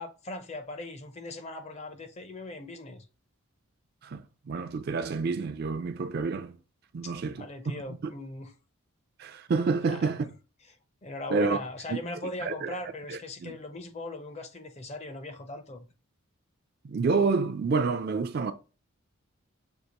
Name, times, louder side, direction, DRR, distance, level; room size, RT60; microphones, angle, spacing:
voice 1, 0.0-3.1 7.0-8.5 9.8-10.1 11.0-15.8, left 2 dB, 30° left, 0.5 m, -39 dB
voice 2, 4.0-6.6 6.9-7.4 9.2-10.3 11.3-11.6 11.9-12.0 12.4-12.7 13.1-13.6 16.8-18.5, right 4 dB, 45° right, 0.4 m, -28 dB
6.5 x 2.4 x 2.9 m
head